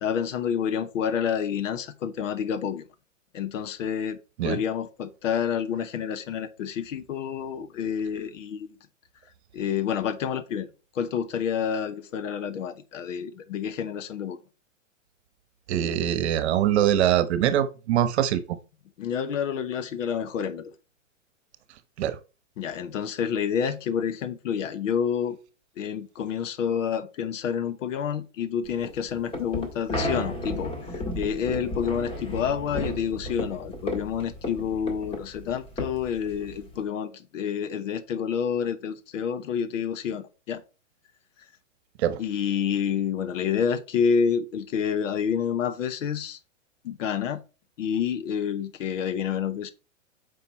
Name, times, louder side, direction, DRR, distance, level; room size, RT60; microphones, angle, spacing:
voice 1, 0.0-2.9 3.3-4.2 4.4-8.8 9.5-10.7 10.9-14.4 19.0-20.7 22.6-25.4 25.8-40.6 42.2-46.4 46.8-47.4 47.8-49.7, left 7 dB, 80° left, 1.1 m, -28 dB
voice 2, 15.7-18.4 22.0-22.1 42.0-42.2, right 11 dB, 60° right, 1.1 m, -23 dB
sound 1, 28.7-36.8, left 1 dB, 15° left, 1.8 m, -34 dB
7.7 x 5.2 x 4.2 m
hypercardioid pair, 150°, 38 cm